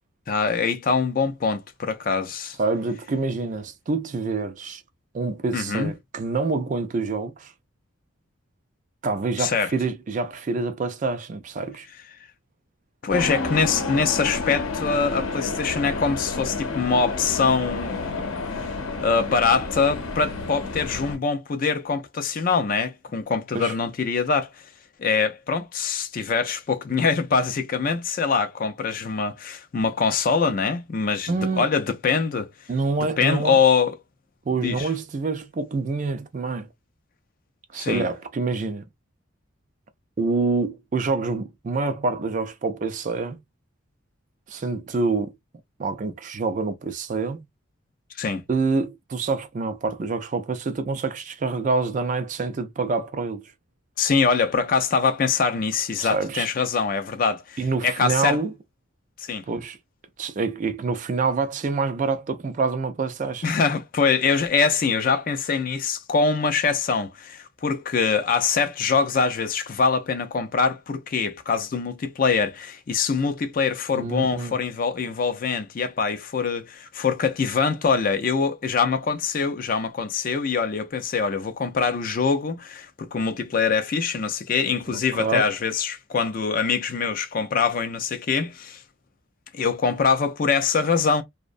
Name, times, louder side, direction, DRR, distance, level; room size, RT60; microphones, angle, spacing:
voice 1, 0.3-2.6 5.5-5.9 9.4-9.7 13.0-18.4 19.0-24.5 25.0-32.5 33.2-34.0 34.6-34.9 37.8-38.1 48.2-48.4 54.0-58.4 59.2-59.4 63.4-88.8 89.5-91.2, left 5 dB, 40° left, 0.4 m, -24 dB
voice 2, 2.6-4.8 5.1-7.5 9.0-11.9 23.5-23.7 31.3-31.7 32.7-33.6 34.5-36.7 37.7-38.8 40.2-43.4 44.5-45.3 45.8-47.4 48.5-53.4 56.0-56.5 57.6-58.5 59.5-59.8 60.2-63.5 73.9-74.5 84.9-85.5, right 4 dB, 35° right, 0.3 m, -26 dB
sound 1, 13.1-21.2, left 3 dB, 85° left, 0.7 m, -30 dB
2.7 x 2.1 x 2.4 m
head